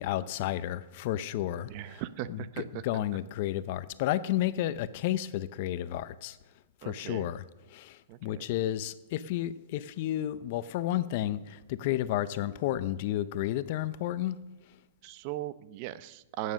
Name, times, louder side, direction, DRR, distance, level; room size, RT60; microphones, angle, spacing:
voice 1, 0.0-2.0 2.3-6.4 6.8-7.4 7.7-14.4, left 13 dB, 45° left, 0.6 m, -32 dB
voice 2, 1.6-2.8 6.8-7.3 8.1-8.5 15.0-16.5, right 13 dB, 40° right, 0.7 m, -38 dB
19.0 x 9.6 x 6.3 m
hypercardioid pair, 150°, 0 cm